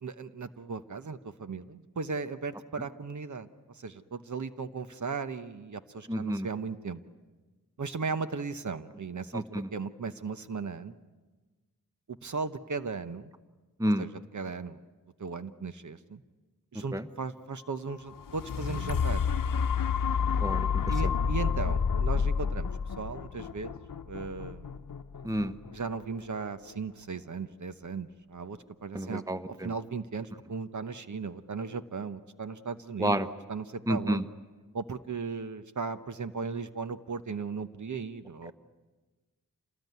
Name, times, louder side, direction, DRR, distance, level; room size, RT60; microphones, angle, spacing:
voice 1, 0.0-7.0 7.8-10.9 12.1-13.3 14.0-14.8 15.2-16.2 16.7-19.2 20.9-22.7 23.0-23.7 24.1-24.7 25.7-33.2 33.5-34.2 34.7-38.5, right 4 dB, 60° right, 11 dB, 1.0 m, -37 dB
voice 2, 6.1-6.5 9.3-9.7 13.8-14.0 16.7-17.1 20.4-21.1 25.2-25.5 28.9-29.7 33.0-33.3 33.9-34.2, equal, 10° right, 11 dB, 1.0 m, -30 dB
sound 1, 18.1-26.2 26.7-26.8, left 6 dB, 80° left, 0.9 m, -29 dB
27.5 x 19.5 x 9.4 m, 1.3 s
wide cardioid pair, 75°, 33 cm